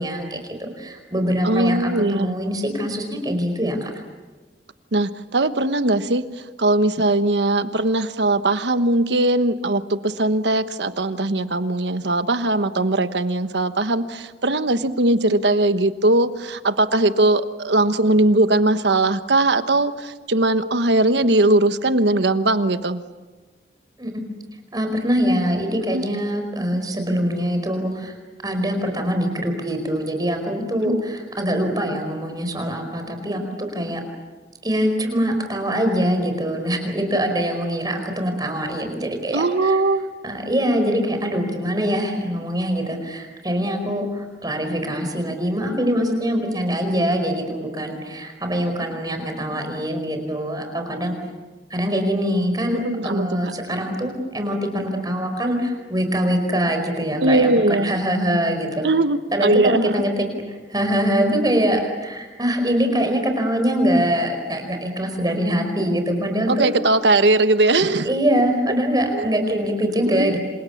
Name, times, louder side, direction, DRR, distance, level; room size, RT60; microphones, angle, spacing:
voice 1, 0.0-3.9 24.0-24.2 24.7-28.1 28.4-34.0 34.6-39.8 40.2-51.1 51.7-58.8 59.3-66.7 68.0-70.4, equal, 20° right, 5 dB, 4.9 m, -23 dB
voice 2, 1.4-2.4 4.9-6.2 6.6-23.0 25.9-26.0 30.8-31.0 39.3-40.0 52.8-53.5 57.2-57.9 58.8-60.0 66.5-68.1 69.1-69.3 70.1-70.4, right 2 dB, 80° right, 11 dB, 1.2 m, -20 dB
28.0 x 27.0 x 7.2 m, 1.3 s
head